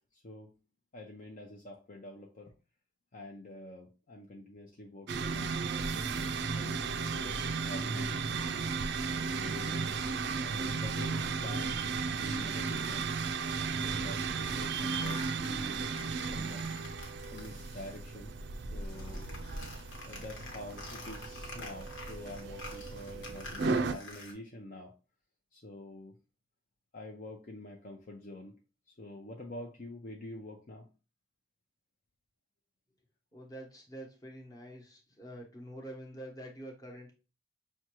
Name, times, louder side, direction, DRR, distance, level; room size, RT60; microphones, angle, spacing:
voice 1, 0.1-0.5 0.9-2.5 3.1-5.6 5.9-6.1 6.5-8.4 9.3-9.9 10.3-11.8 12.1-13.1 13.7-15.9 16.3-16.7 17.3-18.3 18.6-19.3 20.1-24.9 25.5-26.2 26.9-28.5 28.9-30.9, left 1 dB, 40° left, 1 dB, 0.6 m, -47 dB
sound 1, 5.1-23.9, right 4 dB, 60° right, 0.4 m, -35 dB
sound 2, 12.2-18.2 18.4-24.3, left 2 dB, 75° left, 1.2 m, -48 dB
voice 2, 33.3-37.1, right 1 dB, 20° left, -1 dB, 1.0 m, -46 dB
6.0 x 2.2 x 3.0 m, 0.32 s
head